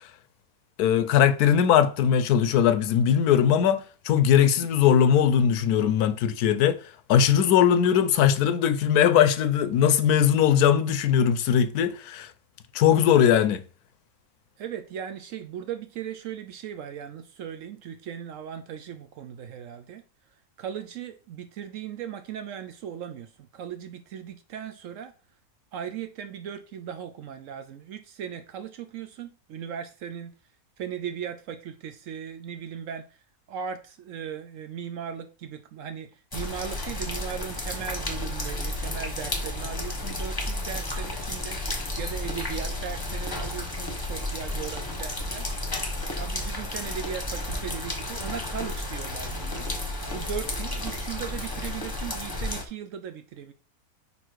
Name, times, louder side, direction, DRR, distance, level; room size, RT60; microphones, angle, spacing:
voice 1, 0.8-6.8 7.1-12.3 12.7-13.6, left 9 dB, 80° left, 1.1 m, -20 dB
voice 2, 14.6-20.0 20.6-25.1 25.7-30.3 30.8-33.1 33.5-45.5 46.1-49.7 50.1-53.5, right 8 dB, 70° right, 0.8 m, -37 dB
sound 1, 36.3-52.6, left 1 dB, 15° left, 0.9 m, -32 dB
5.3 x 4.2 x 4.6 m
omnidirectional pair, 1.7 m